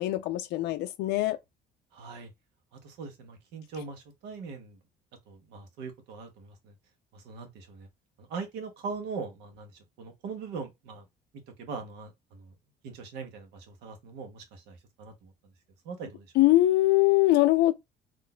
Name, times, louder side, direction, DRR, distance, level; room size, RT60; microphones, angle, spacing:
voice 1, 0.0-1.4 16.4-17.7, left 17 dB, 85° left, 0.4 m, -22 dB
voice 2, 1.9-2.3 2.7-4.8 5.3-6.7 7.1-7.9 8.2-9.7 10.0-11.0 11.6-12.5 12.8-15.3 15.8-16.3, right 4 dB, 90° right, 0.9 m, -41 dB
3.8 x 2.5 x 2.2 m
cardioid pair, 110°, 17 cm